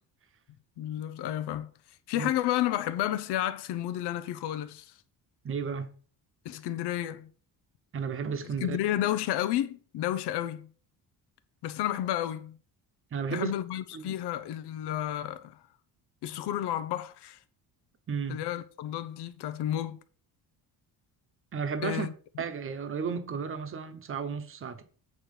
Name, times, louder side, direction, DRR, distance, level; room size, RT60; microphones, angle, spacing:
voice 1, 0.8-1.7 2.1-4.9 6.4-7.3 8.6-10.7 11.6-12.6 13.3-15.6 16.2-17.4 18.3-20.0 21.8-22.1, left 12 dB, 80° left, 0.9 m, -31 dB
voice 2, 5.4-5.9 7.9-8.8 13.1-13.5 13.9-14.1 18.1-18.4 21.5-22.1 22.4-24.8, right 6 dB, 35° right, 1.0 m, -33 dB
8.6 x 4.5 x 6.6 m
cardioid pair, 165°, 39 cm